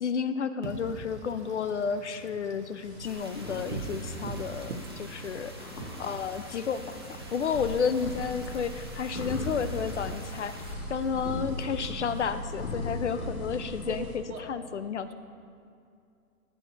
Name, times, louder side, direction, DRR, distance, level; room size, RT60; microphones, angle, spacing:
voice 1, 0.0-5.7 6.0-7.0 7.3-10.6 10.9-14.0 14.5-15.1, left 6 dB, 50° left, 12 dB, 0.5 m, -31 dB
Wind / Rain, 0.6-12.3, right 3 dB, 50° right, 1.0 m, -45 dB
sound 1, 2.8-14.2, left 1 dB, 70° left, 2.4 m, -39 dB
sound 2, 3.0-10.8, right 1 dB, 20° right, 0.4 m, -48 dB
voice 2, 13.8-14.5, right 4 dB, 70° right, 3 dB, 1.5 m, -40 dB
15.0 x 9.5 x 2.7 m, 2.5 s
hypercardioid pair, 140°, 45 cm